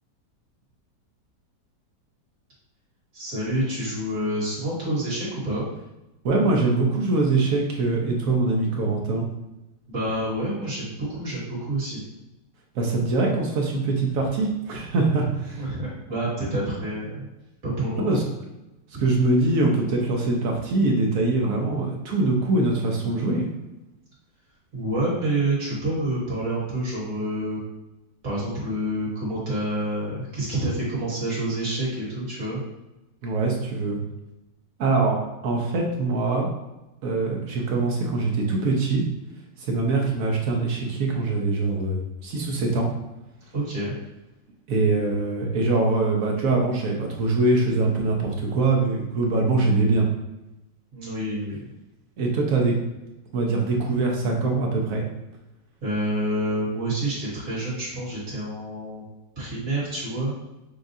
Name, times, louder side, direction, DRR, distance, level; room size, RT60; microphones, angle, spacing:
voice 1, 3.1-5.6 9.9-12.0 15.6-17.3 17.6-18.2 24.7-27.6 28.2-32.6 43.5-43.9 50.9-51.7 55.8-59.0 59.4-60.3, right 1 dB, 45° right, -7 dB, 2.0 m, -28 dB
voice 2, 6.2-9.3 12.7-15.7 18.0-18.2 19.0-23.5 33.2-34.0 34.8-36.5 37.0-39.0 39.6-42.9 44.7-50.1 52.2-52.7 53.3-55.0, right 3 dB, 65° right, 0 dB, 0.9 m, -23 dB
6.3 x 2.4 x 2.6 m, 0.98 s
omnidirectional pair, 1.9 m